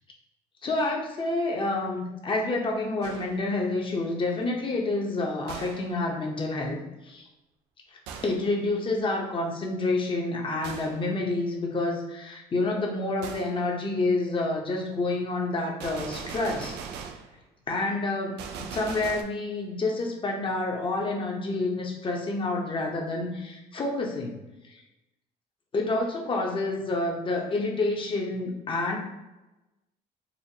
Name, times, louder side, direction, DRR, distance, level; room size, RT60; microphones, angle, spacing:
voice 1, 0.6-7.3 8.2-16.8 17.7-24.4 24.6-24.8 25.7-29.0, left 2 dB, 30° left, 0 dB, 0.8 m, -28 dB
Gunshot gunfire, 3.0-3.5 5.5-6.0 8.1-8.5 10.6-11.1 13.2-13.6 15.8-17.3 18.4-19.2, right 6 dB, 90° right, 0.4 m, -40 dB
4.1 x 2.5 x 2.8 m, 1.0 s
cardioid pair, 110°, 17 cm